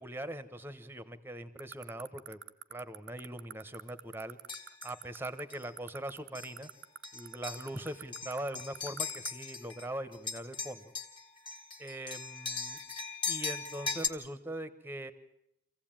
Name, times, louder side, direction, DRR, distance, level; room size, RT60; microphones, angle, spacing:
voice 1, 0.0-2.4 2.7-4.4 4.8-6.7 7.1-10.9 11.8-12.8 13.2-15.1, right 1 dB, 10° right, 13 dB, 1.1 m, -41 dB
sound 1, 1.6-9.3, right 10 dB, 60° right, 0.9 m, -43 dB
sound 2, 4.5-5.0 5.5-5.7 6.4-6.7 7.0-9.9 10.1-14.1, left 5 dB, 25° left, 1.7 m, -39 dB
25.5 x 16.0 x 9.0 m, 0.82 s
head